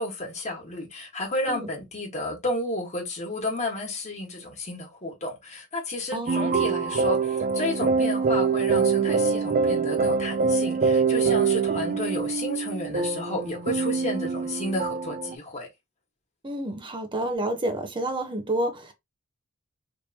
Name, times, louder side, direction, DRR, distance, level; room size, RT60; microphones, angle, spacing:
voice 1, 0.0-15.7, left 1 dB, 35° left, 1.6 m, -32 dB
voice 2, 6.1-6.5 16.4-18.9, right 1 dB, 20° right, 0.8 m, -29 dB
sound 1, 6.3-15.3, right 5 dB, 40° right, 0.4 m, -24 dB
3.3 x 2.9 x 2.8 m
head